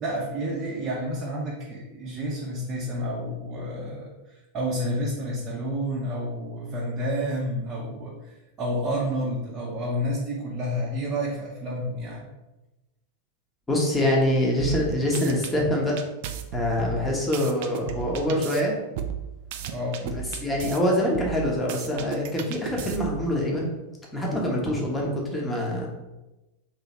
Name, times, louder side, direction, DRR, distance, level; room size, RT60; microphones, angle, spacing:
voice 1, 0.0-12.2 16.9-17.0 19.7-20.0, equal, 25° right, -5 dB, 0.8 m, -30 dB
voice 2, 13.7-16.0 16.5-18.7 20.0-23.7 24.1-25.9, left 1 dB, 10° left, -2 dB, 1.1 m, -25 dB
sound 1, 14.6-15.5 16.0-18.6 19.0-20.8 21.1-23.3, right 9 dB, 50° right, 0.4 m, -34 dB
3.3 x 3.0 x 4.1 m, 1.0 s
figure-of-eight pair, 90°, 0 cm